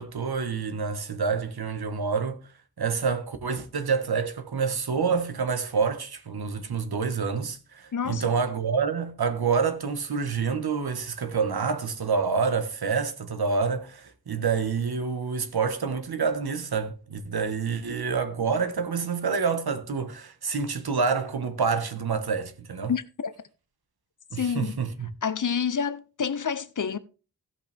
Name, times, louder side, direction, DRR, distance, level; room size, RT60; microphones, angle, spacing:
voice 1, 0.0-2.4 2.8-22.9 24.3-25.1, right 5 dB, 75° right, 1.4 m, -27 dB
voice 2, 7.9-8.2 22.9-23.3 24.4-24.8 25.2-27.0, left 7 dB, 55° left, 0.8 m, -28 dB
16.5 x 5.7 x 3.5 m
wide cardioid pair, 90°, 38 cm